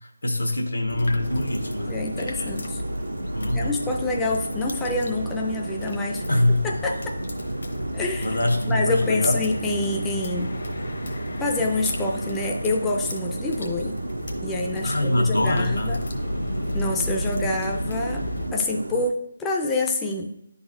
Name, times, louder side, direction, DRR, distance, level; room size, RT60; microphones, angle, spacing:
voice 1, 0.2-2.5 3.3-3.7 6.3-6.6 8.2-9.4 14.8-16.0, left 1 dB, 90° left, 2 dB, 1.2 m, -24 dB
sound 1, 0.9-18.5, left 1 dB, 65° left, 1.0 m, -33 dB
sound 2, 1.2-19.1, right 1 dB, 75° right, 0.5 m, -34 dB
voice 2, 1.9-2.8 3.5-6.2 6.6-7.1 7.9-8.4 8.7-10.5 11.4-14.0 14.4-16.0 16.7-20.4, left 2 dB, 10° left, -1 dB, 0.4 m, -27 dB
9.7 x 4.0 x 2.5 m, 0.81 s
figure-of-eight pair, 160°, 0 cm